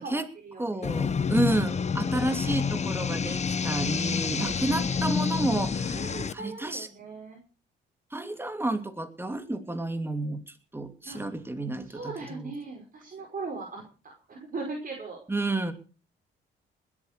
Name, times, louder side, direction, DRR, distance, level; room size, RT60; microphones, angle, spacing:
voice 1, 0.0-1.2 4.2-4.8 5.9-7.4 11.0-11.3 11.8-15.2, right 3 dB, 45° right, 1 dB, 5.4 m, -40 dB
voice 2, 0.6-6.1 6.3-6.9 8.1-12.0 12.3-12.5 15.3-15.7, right 2 dB, 10° right, 7 dB, 2.8 m, -30 dB
sound 1, 0.8-6.3, left 5 dB, 35° left, 1.1 m, -28 dB
20.0 x 8.6 x 6.8 m, 0.37 s
cardioid pair, 90°, 20 cm